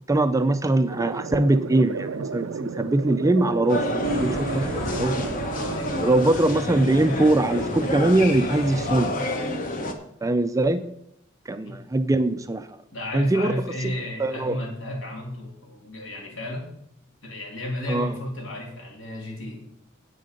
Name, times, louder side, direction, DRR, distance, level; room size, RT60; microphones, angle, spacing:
voice 1, 0.1-5.4 6.0-9.3 10.2-10.8 11.5-12.8 13.1-13.5 13.8-13.9 14.2-14.6 17.9-18.1, right 2 dB, 15° right, 10 dB, 0.4 m, -22 dB
sound 1, 0.9-6.9, right 5 dB, 80° right, 0.5 m, -34 dB
sound 2, 3.7-9.9, left 1 dB, 40° left, 1.2 m, -29 dB
sound 3, 4.0-9.1, equal, 85° left, 5.0 m, -37 dB
voice 2, 5.5-6.2 11.6-11.8 12.9-16.7 17.2-19.7, left 1 dB, 70° left, 0 dB, 3.2 m, -33 dB
9.4 x 8.3 x 5.2 m, 0.76 s
head